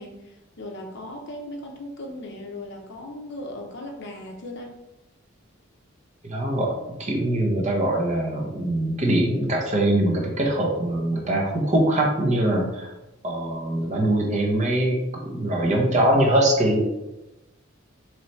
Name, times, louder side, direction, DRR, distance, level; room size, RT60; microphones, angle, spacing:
voice 1, 0.0-4.8, left 1 dB, 55° left, 2 dB, 0.7 m, -37 dB
voice 2, 6.2-6.7 7.0-12.9 13.2-16.8, right 1 dB, 35° right, 0 dB, 0.8 m, -22 dB
4.0 x 3.1 x 3.1 m, 0.97 s
head